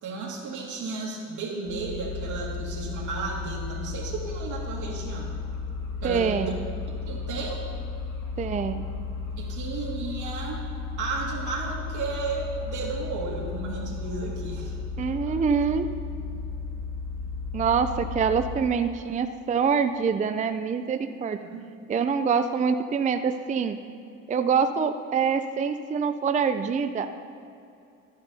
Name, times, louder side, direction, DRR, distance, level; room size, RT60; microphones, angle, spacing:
voice 1, 0.0-5.3 6.0-6.5 6.9-7.6 9.4-10.6 11.0-14.7 15.3-15.4 21.4-21.7, right 4 dB, 80° right, -2 dB, 2.1 m, -33 dB
sound 1, 1.7-18.6, left 4 dB, 65° left, 2.1 m, -34 dB
voice 2, 6.0-6.6 8.4-8.9 15.0-15.9 17.5-21.4 21.9-23.8 24.3-27.1, right 6 dB, 25° right, 9 dB, 0.4 m, -25 dB
13.5 x 10.5 x 2.7 m, 2.6 s
cardioid pair, 90°, 30 cm